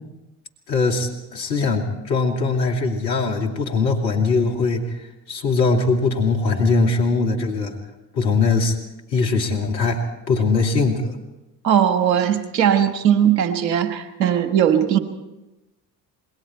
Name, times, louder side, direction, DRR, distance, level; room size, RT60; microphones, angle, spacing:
voice 1, 0.7-7.8 8.1-8.8 9.1-10.0 10.3-11.1, left 4 dB, 85° left, 2 dB, 2.6 m, -21 dB
voice 2, 11.6-15.0, right 9 dB, 85° right, 9 dB, 1.6 m, -18 dB
27.5 x 22.0 x 4.5 m, 1.0 s
hypercardioid pair, 50°, 49 cm